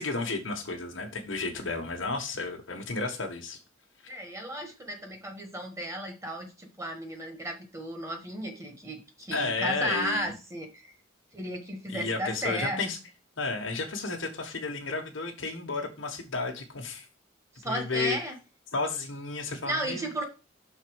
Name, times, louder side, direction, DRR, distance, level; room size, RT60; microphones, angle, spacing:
voice 1, 0.0-3.6 9.3-10.3 11.9-13.0 13.4-17.1 17.6-18.2 18.7-20.2, left 3 dB, 75° left, 1 dB, 1.3 m, -32 dB
voice 2, 4.1-10.9 11.3-12.8 17.5-18.3 19.6-20.2, equal, 15° right, 4 dB, 1.4 m, -34 dB
5.8 x 4.1 x 6.2 m, 0.31 s
head